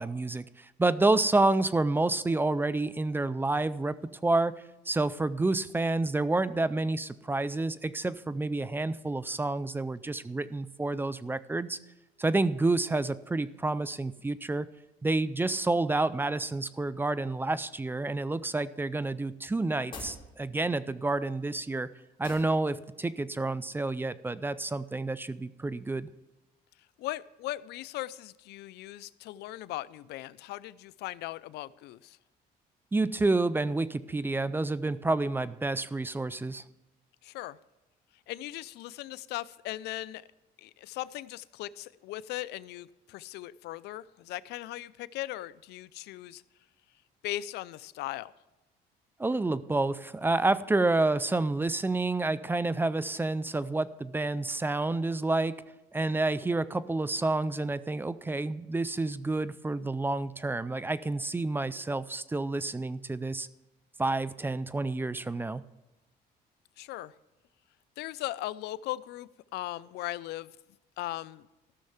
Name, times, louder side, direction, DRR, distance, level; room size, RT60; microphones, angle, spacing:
voice 1, 0.0-4.0 4.2-11.8 12.2-14.7 15.0-21.9 22.2-26.1 32.9-36.6 49.2-55.6 55.9-63.5 64.0-65.6, right 2 dB, 10° right, 16 dB, 0.4 m, -29 dB
sound 1, 19.9-20.2 22.2-22.6, left 3 dB, 30° left, 3.6 m, -43 dB
voice 2, 27.0-32.2 37.2-37.6 38.3-40.2 40.6-46.4 47.2-48.3 66.8-67.1 68.0-70.5 71.0-71.5, left 15 dB, 80° left, 18 dB, 0.4 m, -38 dB
14.0 x 6.4 x 5.8 m, 1.0 s
cardioid pair, 110°, 17 cm